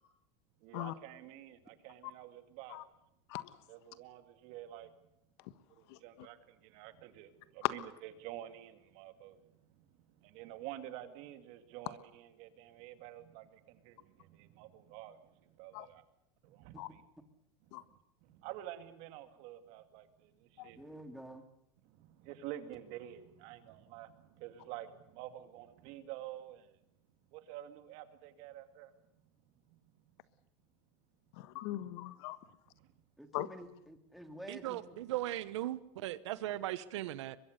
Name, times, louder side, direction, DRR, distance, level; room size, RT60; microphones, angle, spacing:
voice 1, 0.6-2.8 3.7-4.9 5.8-9.4 9.7-16.0 16.4-17.0 17.7-20.8 21.8-26.7 27.3-28.9 29.7-29.8 32.4-32.9, right 13 dB, 55° right, 9 dB, 2.4 m, -49 dB
voice 2, 20.8-21.5 33.2-35.0, right 1 dB, ahead, 6 dB, 2.3 m, -49 dB
voice 3, 31.4-32.4 33.3-33.5, left 17 dB, 65° left, 14 dB, 1.4 m, -38 dB
voice 4, 34.5-37.4, right 14 dB, 85° right, 16 dB, 1.1 m, -38 dB
23.5 x 22.5 x 6.7 m, 0.82 s
supercardioid pair, 145°, 15 cm